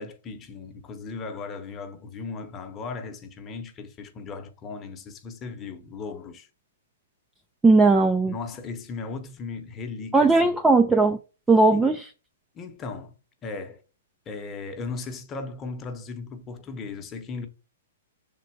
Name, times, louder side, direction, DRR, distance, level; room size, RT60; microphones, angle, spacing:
voice 1, 0.0-6.5 8.3-10.6 11.7-11.9 12.5-13.8 14.3-17.5, left 4 dB, 20° left, 1.0 m, -37 dB
voice 2, 7.6-8.3 10.1-11.2 11.5-12.0, right 3 dB, 5° right, 0.4 m, -18 dB
6.5 x 3.9 x 4.6 m
hypercardioid pair, 160°, 0 cm